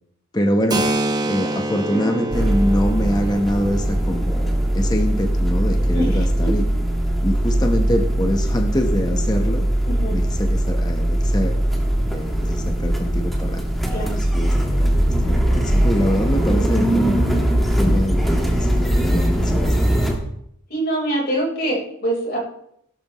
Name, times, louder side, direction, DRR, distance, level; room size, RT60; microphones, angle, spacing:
voice 1, 0.3-0.8 1.2-6.6 7.2-9.7 10.1-11.5 12.1-13.6 13.9-17.2 17.8-20.0, equal, 20° left, 3 dB, 1.0 m, -24 dB
Keyboard (musical), 0.7-8.1, right 1 dB, 20° right, 0.9 m, -29 dB
sound 1, 2.3-20.2, right 1 dB, ahead, 1.7 m, -20 dB
voice 2, 9.9-10.2 13.9-14.2 20.7-22.4, right 1 dB, 45° left, -2 dB, 4.2 m, -24 dB
16.0 x 12.0 x 3.1 m, 0.72 s
head